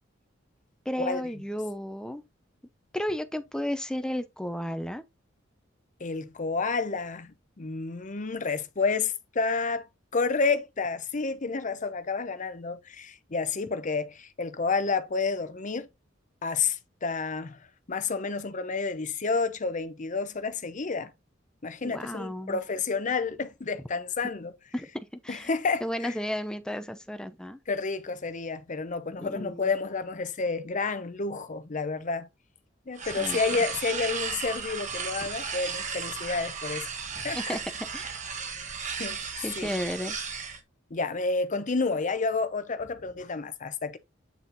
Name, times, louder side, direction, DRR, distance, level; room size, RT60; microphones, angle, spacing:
voice 1, 0.9-2.2 2.9-5.0 21.8-22.6 24.7-25.5 25.8-27.6 29.2-29.7 33.2-33.7 37.3-38.1 39.4-40.2, equal, 5° left, 0.6 m, -33 dB
voice 2, 6.0-9.9 10.1-15.9 16.4-17.6 17.9-21.1 21.6-24.5 25.3-26.1 27.7-32.3 32.9-36.9 37.1-37.6 39.0-39.2 39.6-39.7 40.9-44.0, left 4 dB, 40° left, 0.7 m, -30 dB
sound 1, 32.9-40.6, right 5 dB, 40° right, 1.2 m, -35 dB
8.2 x 4.2 x 2.7 m
head